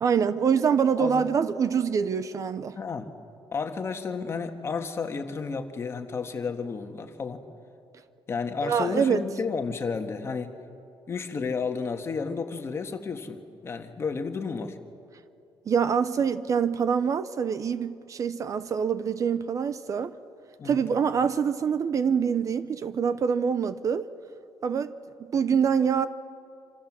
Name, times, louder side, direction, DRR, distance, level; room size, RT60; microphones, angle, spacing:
voice 1, 0.0-2.8 8.6-9.2 15.7-20.1 20.6-24.1 24.6-24.9 25.3-26.1, right 7 dB, 40° right, 0.7 m, -25 dB
voice 2, 1.0-1.3 2.8-3.1 3.5-7.4 8.3-10.6 11.1-14.8 20.6-20.9, left 5 dB, 30° left, 1.6 m, -32 dB
27.0 x 27.0 x 7.5 m
cardioid pair, 165°, 9 cm